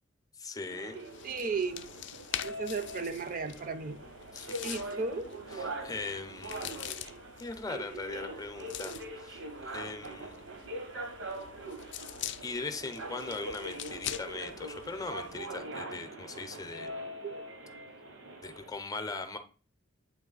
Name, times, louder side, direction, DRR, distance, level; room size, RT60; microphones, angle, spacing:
voice 1, 0.4-1.0 4.3-4.7 5.5-6.9 7.4-10.3 12.4-17.0 18.4-19.4, left 3 dB, 20° left, 0.6 m, -40 dB
sound 1, 0.7-18.7, right 1 dB, 90° right, 1.1 m, -43 dB
sound 2, 0.9-15.6, left 11 dB, 65° left, 0.4 m, -45 dB
voice 2, 1.2-2.0 2.4-4.0 4.6-5.3 17.2-17.4, right 4 dB, 45° right, 0.5 m, -35 dB
8.2 x 3.1 x 3.9 m
head